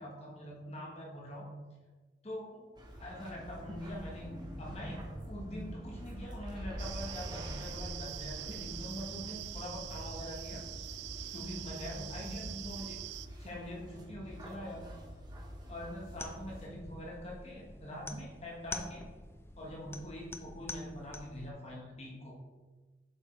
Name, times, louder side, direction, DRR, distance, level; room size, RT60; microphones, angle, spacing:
voice 1, 0.0-1.5 2.2-2.6 3.0-10.6 11.3-13.0 13.4-14.9 15.7-19.1 19.6-22.3, equal, 35° left, -3 dB, 1.2 m, -44 dB
sound 1, 2.8-16.7, equal, 25° right, 1.1 m, -45 dB
sound 2, 6.8-13.3, right 15 dB, 70° right, 0.3 m, -45 dB
sound 3, 16.1-21.5, left 3 dB, 15° left, 0.4 m, -47 dB
7.8 x 5.4 x 3.2 m, 1.3 s
head